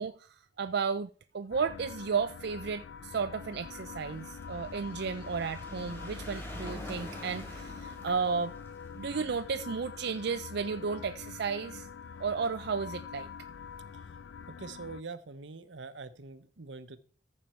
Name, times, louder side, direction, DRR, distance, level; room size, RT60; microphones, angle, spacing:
voice 1, 0.0-8.5 9.0-11.9 12.2-13.3, right 5 dB, 60° right, 0.5 m, -33 dB
sound 1, 1.5-15.0, left 6 dB, 85° left, 0.4 m, -45 dB
sound 2, 3.3-11.8 12.6-12.7 12.9-13.0 13.3-13.4, equal, 15° left, 3.2 m, -47 dB
voice 2, 14.6-17.0, right 3 dB, 80° right, 1.0 m, -44 dB
14.0 x 6.7 x 4.5 m
head